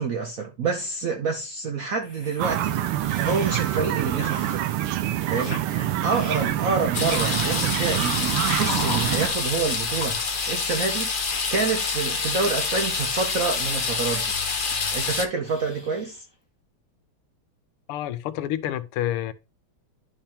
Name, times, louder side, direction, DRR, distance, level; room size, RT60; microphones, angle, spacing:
voice 1, 0.0-2.8 3.2-4.7 5.3-11.1 11.5-14.3 14.9-16.2, right 4 dB, 60° right, 0.9 m, -28 dB
sound 1, 2.0-4.7 5.0-5.6 6.1-6.5 7.1-7.7 8.5-9.2 10.0-10.7 11.3-11.8 12.3-13.0 13.4-15.1 15.4-16.3, left 3 dB, 20° left, 0.8 m, -40 dB
sound 2, 2.4-9.3, right 12 dB, 85° right, 1.6 m, -26 dB
sound 3, 6.9-15.2, left 4 dB, 65° left, 0.5 m, -27 dB
voice 2, 17.9-19.3, left 12 dB, 85° left, 1.6 m, -28 dB
10.5 x 3.5 x 4.3 m
omnidirectional pair, 2.4 m